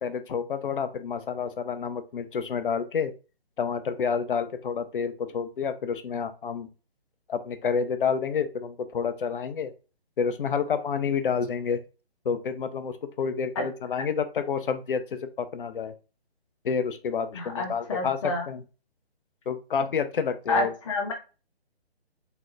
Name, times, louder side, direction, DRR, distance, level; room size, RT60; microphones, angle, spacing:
voice 1, 0.0-3.1 3.6-6.7 7.3-9.7 10.2-11.8 12.3-15.9 16.6-18.6 19.5-20.7, left 6 dB, 55° left, 10 dB, 0.5 m, -29 dB
voice 2, 17.3-18.4 20.5-21.1, left 2 dB, 30° left, 2 dB, 0.9 m, -28 dB
3.8 x 2.1 x 3.0 m, 0.34 s
figure-of-eight pair, 140°, 32 cm